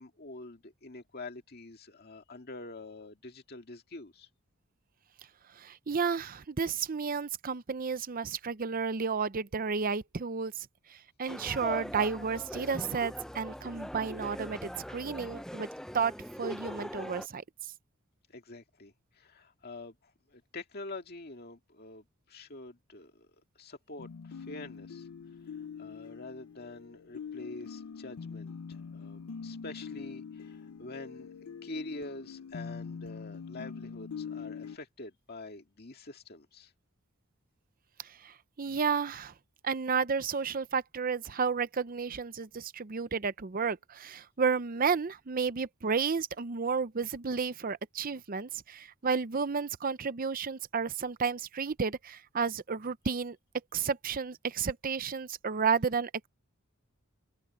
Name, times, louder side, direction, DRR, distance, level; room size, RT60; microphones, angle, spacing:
voice 1, 0.0-4.3 18.3-25.1 25.5-31.3 31.6-36.7, left 2 dB, 45° left, 2.2 m, -46 dB
voice 2, 5.6-15.7 15.9-16.1 16.4-17.4 38.2-39.3 39.6-53.4 53.7-56.3, right 5 dB, 40° right, 0.6 m, -32 dB
sound 1, 11.3-17.3, equal, 5° left, 0.6 m, -41 dB
sound 2, 24.0-34.8, left 6 dB, 80° left, 0.5 m, -43 dB
open air
head